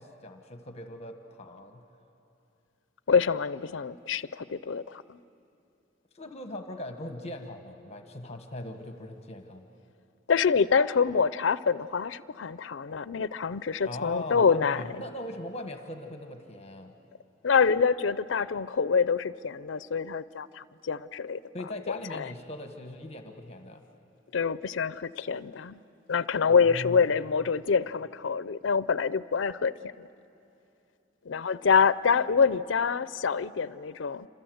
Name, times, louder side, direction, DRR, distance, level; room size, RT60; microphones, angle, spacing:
voice 1, 0.0-1.8 6.1-9.7 13.8-16.9 21.5-23.8 26.5-27.1, left 1 dB, 35° left, 5 dB, 1.4 m, -40 dB
voice 2, 3.1-5.2 10.3-15.0 17.4-22.3 24.3-25.8 26.1-30.1 31.3-34.3, left 5 dB, 80° left, 16 dB, 0.5 m, -26 dB
28.0 x 26.5 x 7.9 m, 2.8 s
head